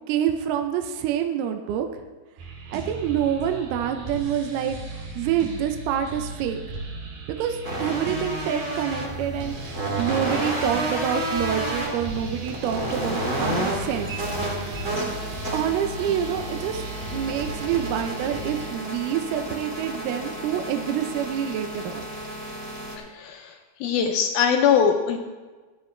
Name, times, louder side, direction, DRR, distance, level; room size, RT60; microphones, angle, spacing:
voice 1, 0.1-1.9 2.7-6.6 7.4-14.1 15.5-16.8 17.1-22.0, right 9 dB, 80° right, 6 dB, 2.5 m, -27 dB
sound 1, 2.4-18.7, right 2 dB, 60° right, 3.5 m, -36 dB
sound 2, 7.6-23.0, right 1 dB, 30° right, 1.4 m, -31 dB
voice 2, 23.2-23.5 23.8-25.2, left 7 dB, 80° left, 4 dB, 2.2 m, -21 dB
15.0 x 11.5 x 3.2 m, 1.3 s
omnidirectional pair, 5.0 m